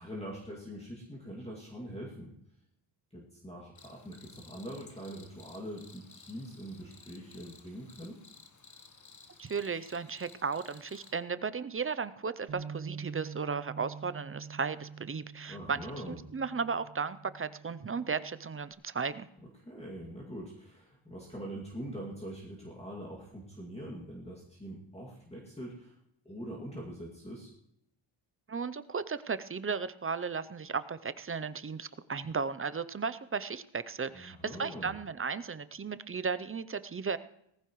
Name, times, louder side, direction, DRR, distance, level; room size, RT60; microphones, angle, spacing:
voice 1, 0.0-2.3 3.1-8.2 15.5-16.2 19.6-26.0 26.2-27.5 34.1-34.9, equal, 10° left, -4 dB, 2.2 m, -43 dB
Cricket, 3.8-11.2, left 4 dB, 35° left, 1.2 m, -56 dB
voice 2, 9.4-15.8 16.1-19.3 28.5-37.2, right 5 dB, 30° right, 14 dB, 0.5 m, -35 dB
Bass guitar, 12.5-18.7, right 6 dB, 50° right, 1.7 m, -46 dB
19.0 x 15.0 x 3.1 m, 0.77 s
wide cardioid pair, 140°, 49 cm